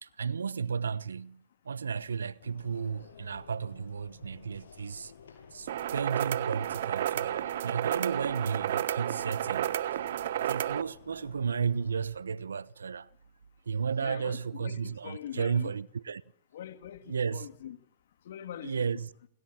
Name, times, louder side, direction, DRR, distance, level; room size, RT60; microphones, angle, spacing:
voice 1, 0.0-5.1 5.5-9.8 10.4-13.1 13.7-16.2 17.1-17.5 18.6-19.1, right 6 dB, 85° right, 1.1 m, -33 dB
sound 1, 2.4-12.0, left 6 dB, 80° left, 7.8 m, -54 dB
sound 2, 5.7-10.8, right 12 dB, 60° right, 1.1 m, -31 dB
voice 2, 14.0-15.7 16.5-17.8 18.2-19.0, left 10 dB, 65° left, 3.2 m, -43 dB
28.5 x 24.5 x 7.6 m
hypercardioid pair, 125°, 0 cm